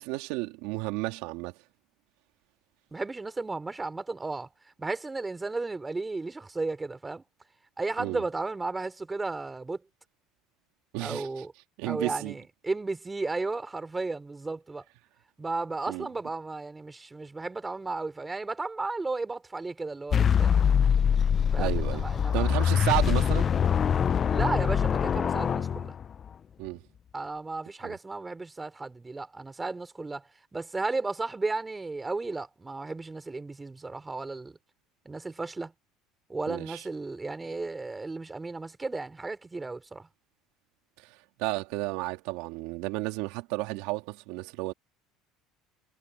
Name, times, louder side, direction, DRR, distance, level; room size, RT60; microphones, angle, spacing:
voice 1, 0.0-1.5 8.0-8.2 10.9-11.3 11.8-12.3 15.9-16.1 21.6-22.0 22.3-23.5 26.6-26.8 27.8-27.9 36.5-36.8 41.4-44.7, right 22 dB, 80° right, 3.3 m, -32 dB
voice 2, 2.9-4.5 4.8-7.2 7.8-9.8 11.0-11.5 11.8-14.9 15.4-20.6 21.5-22.7 24.3-26.0 27.1-30.2 30.5-34.6 35.1-35.7 36.3-40.1, right 3 dB, 15° right, 3.6 m, -34 dB
sound 1, 20.1-26.3, left 7 dB, 35° left, 0.5 m, -24 dB
supercardioid pair, 105°, 0 cm